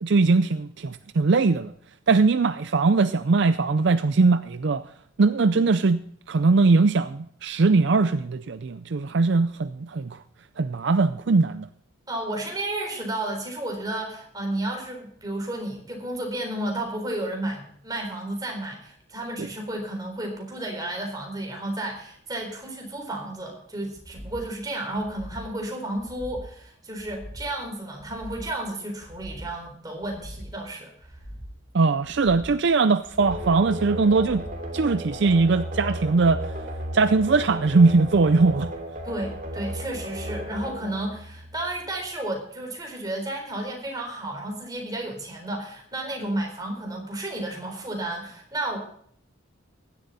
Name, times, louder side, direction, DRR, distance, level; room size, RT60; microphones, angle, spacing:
voice 1, 0.0-1.7 2.1-4.8 5.2-10.2 10.6-11.7 31.7-34.4 34.7-36.5 36.9-38.7, right 3 dB, 55° right, 0.5 m, -21 dB
voice 2, 12.1-31.1 39.0-48.8, right 1 dB, 20° right, 4.0 m, -32 dB
sound 1, 23.9-24.5 24.9-25.5 25.9-26.5 26.9-27.5 27.9-28.5 29.0-29.5 30.0-30.6 31.0-31.6 32.0-32.6 33.0-33.6 34.0-34.6 35.0-35.1, equal, 5° left, 2.4 m, -42 dB
sound 2, 33.2-41.9, equal, 40° right, 3.0 m, -35 dB
16.0 x 11.5 x 4.2 m
head